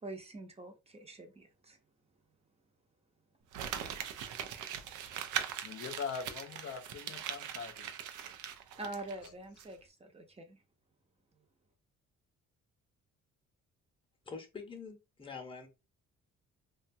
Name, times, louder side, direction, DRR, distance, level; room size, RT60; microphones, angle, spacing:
voice 1, 0.0-1.8 8.8-10.6, right 2 dB, 20° right, 0.7 m, -45 dB
Crumpling crinkling, 3.5-9.3 9.6-9.7, right 9 dB, 80° right, 0.5 m, -41 dB
voice 2, 5.6-8.1 9.2-9.3, left 6 dB, 50° left, 0.6 m, -42 dB
voice 3, 14.3-15.7, left 5 dB, 15° left, 0.8 m, -45 dB
2.7 x 2.3 x 2.6 m
cardioid pair, 90°, 30 cm